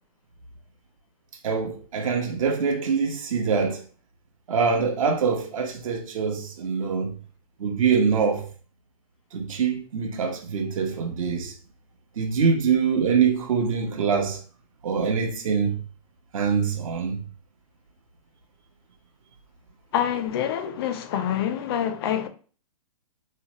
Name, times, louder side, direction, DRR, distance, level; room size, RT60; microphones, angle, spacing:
voice 1, 1.4-3.8 4.5-7.1 7.6-8.5 9.3-11.5 12.2-14.4 14.8-15.8 16.3-17.2, right 6 dB, 60° right, 0.8 m, -24 dB
voice 2, 19.9-22.3, left 10 dB, 40° left, 0.4 m, -26 dB
2.9 x 2.1 x 2.9 m
hypercardioid pair, 135°, 19 cm